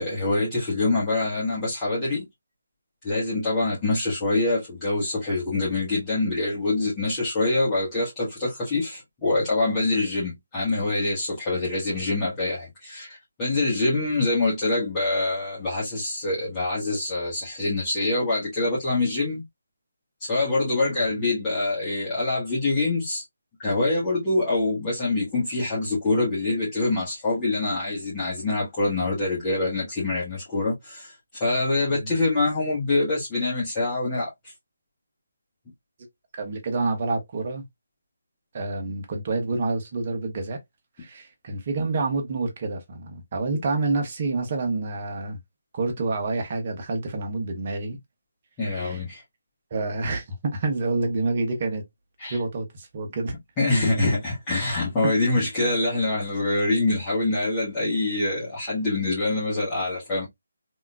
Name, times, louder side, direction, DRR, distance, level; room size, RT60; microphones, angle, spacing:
voice 1, 0.0-2.2 3.0-19.4 20.2-23.2 23.6-34.3 48.6-49.2 52.2-52.4 53.6-60.3, left 2 dB, 20° left, 1.5 m, -25 dB
voice 2, 36.4-37.6 38.5-40.6 41.0-45.4 45.7-48.0 48.7-49.0 49.7-51.8 52.3-53.3 55.0-55.1, right 3 dB, 40° right, 1.1 m, -28 dB
3.5 x 2.9 x 2.3 m
figure-of-eight pair, 155°, 0 cm